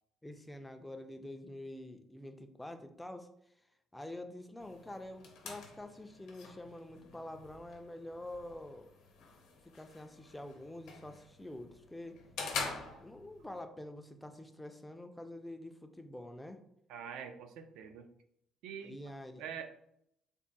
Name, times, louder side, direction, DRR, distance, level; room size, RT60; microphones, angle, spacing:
voice 1, 0.2-3.3 3.9-8.9 9.6-12.2 13.0-16.6 18.8-19.4, left 1 dB, 5° left, 7 dB, 0.3 m, -47 dB
sound 1, 4.6-13.6, left 4 dB, 70° left, 0.8 m, -46 dB
voice 2, 16.9-18.1 18.6-19.0 19.4-19.7, right 7 dB, 85° right, 6 dB, 0.5 m, -45 dB
3.5 x 2.1 x 4.0 m, 0.74 s
cardioid pair, 145°, 0 cm